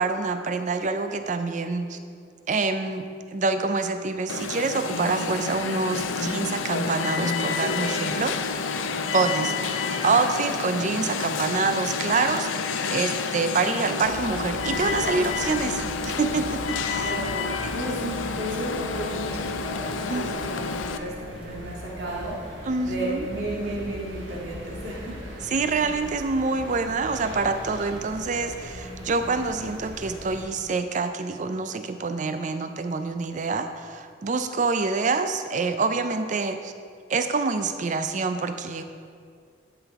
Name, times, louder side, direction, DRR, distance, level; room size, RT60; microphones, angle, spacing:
voice 1, 0.0-2.0 2.5-8.3 9.1-17.1 17.6-17.8 20.1-20.3 22.7-23.3 25.4-36.7 37.1-38.8, right 4 dB, 40° right, 8 dB, 0.4 m, -26 dB
Alarm, 4.3-21.0, left 5 dB, 80° left, 0.5 m, -29 dB
sound 1, 14.0-30.4, equal, 75° right, 1.5 m, -40 dB
voice 2, 17.0-17.4 17.7-25.2, right 1 dB, 55° right, -4 dB, 1.9 m, -34 dB
11.5 x 5.8 x 3.5 m, 2.2 s
head